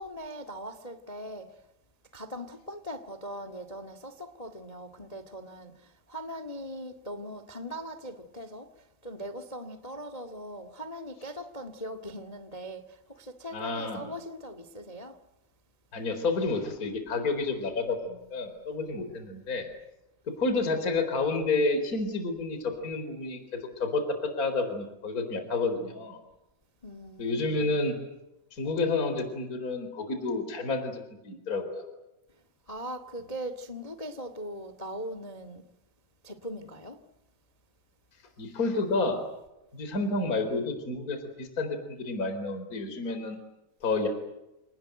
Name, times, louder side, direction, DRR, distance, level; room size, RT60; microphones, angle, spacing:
voice 1, 0.0-1.6 2.1-15.2 26.8-27.8 32.7-35.6 36.2-37.0, equal, 65° left, 0.3 m, -40 dB
voice 2, 13.5-14.1 15.9-19.7 20.4-26.2 27.2-27.9 28.5-31.9 38.4-39.2 39.7-43.4 43.8-44.1, left 3 dB, 20° left, 4.2 m, -30 dB
29.0 x 19.5 x 9.2 m
omnidirectional pair, 4.7 m